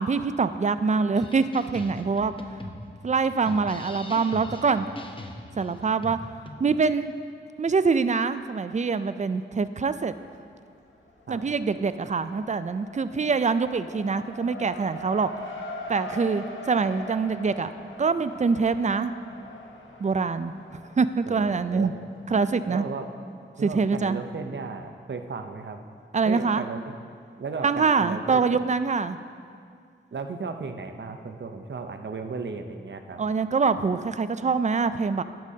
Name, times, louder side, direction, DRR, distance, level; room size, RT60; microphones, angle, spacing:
voice 1, 0.0-2.3 3.0-4.9 5.5-6.2 6.6-7.1 7.6-10.1 11.3-15.3 15.9-17.7 18.0-19.1 20.0-20.5 21.0-21.9 22.3-22.8 23.6-24.2 26.1-26.6 27.6-29.2 33.2-35.2, right 4 dB, 35° right, 13 dB, 0.4 m, -24 dB
sound 1, 1.1-6.6, left 2 dB, 25° left, 0.8 m, -41 dB
Race car auto racing, 10.0-10.6 10.9-22.2, left 2 dB, 80° left, 1.1 m, -42 dB
voice 2, 21.3-21.9 22.7-23.1 23.6-25.8 26.2-26.9 27.4-28.6 30.1-33.2, right 4 dB, 65° right, 6 dB, 0.7 m, -35 dB
11.5 x 10.5 x 2.8 m, 2.2 s
wide cardioid pair, 65°, 20 cm